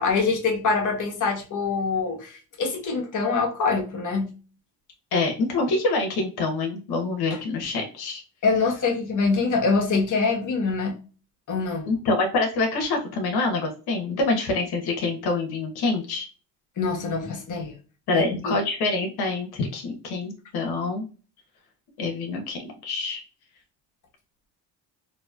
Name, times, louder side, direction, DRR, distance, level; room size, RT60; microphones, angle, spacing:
voice 1, 0.0-4.3 8.4-11.0 11.5-11.9 16.8-17.8 18.1-18.6, left 4 dB, 50° left, 1 dB, 1.2 m, -24 dB
voice 2, 5.1-8.2 11.9-16.3 18.1-21.0 22.0-23.2, left 3 dB, 75° left, 3 dB, 1.1 m, -26 dB
3.0 x 2.8 x 2.3 m, 0.35 s
cardioid pair, 80°, 38 cm